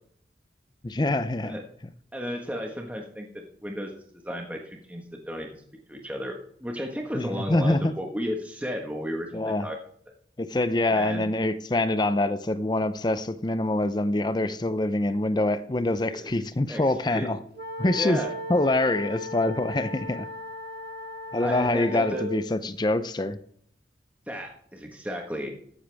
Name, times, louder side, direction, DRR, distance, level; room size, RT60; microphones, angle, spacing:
voice 1, 0.8-1.6 7.1-7.9 9.3-9.7 10.4-17.4 17.8-18.2 18.5-20.3 21.3-23.4, left 2 dB, 25° left, 12 dB, 0.6 m, -25 dB
voice 2, 2.1-5.6 5.9-9.8 10.9-11.2 16.1-16.3 16.7-17.3 17.9-18.3 21.4-22.2 24.3-25.5, equal, 10° right, 1 dB, 1.4 m, -34 dB
sound 1, 17.6-22.5, equal, 65° right, 1.9 m, -37 dB
14.0 x 10.5 x 3.5 m, 0.62 s
head